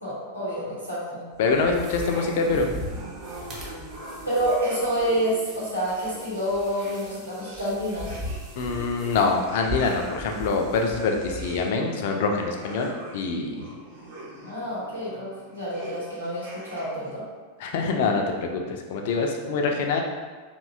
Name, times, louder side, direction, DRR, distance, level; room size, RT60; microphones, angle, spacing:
voice 1, 0.0-1.2 4.2-8.1 14.4-17.2, equal, 85° right, -9 dB, 0.9 m, -28 dB
sound 1, 1.3-11.6, left 1 dB, 25° right, 0.6 m, -39 dB
voice 2, 1.4-2.7 8.6-13.7 17.6-20.0, left 4 dB, 50° left, 3 dB, 0.3 m, -25 dB
sound 2, 1.7-17.1, right 1 dB, 60° right, 0.8 m, -43 dB
2.6 x 2.1 x 2.4 m, 1.4 s
figure-of-eight pair, 90°, 0 cm